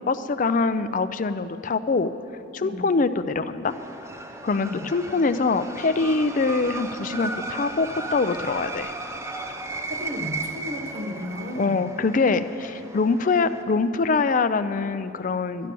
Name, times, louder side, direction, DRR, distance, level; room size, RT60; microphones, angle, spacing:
voice 1, 0.1-2.1 2.5-3.7 4.4-8.9 11.6-15.7, left 4 dB, 40° left, 11 dB, 0.4 m, -24 dB
sound 1, 3.7-13.6, right 3 dB, 15° right, 0.6 m, -35 dB
voice 2, 9.9-11.9, left 1 dB, 50° right, 2 dB, 1.1 m, -34 dB
11.5 x 11.5 x 6.8 m, 2.7 s
head